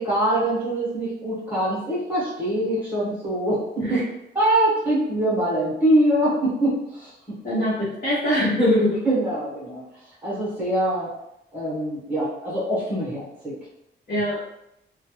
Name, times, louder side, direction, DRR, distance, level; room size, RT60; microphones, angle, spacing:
voice 1, 0.0-3.6 3.9-4.0 4.3-7.4 9.0-9.8 10.2-11.1 11.5-13.6, right 1 dB, 10° right, -6 dB, 0.9 m, -23 dB
voice 2, 7.4-9.0 14.1-14.4, left 1 dB, 40° left, -12 dB, 1.2 m, -22 dB
3.1 x 2.2 x 3.0 m, 0.83 s
wide cardioid pair, 175°, 19 cm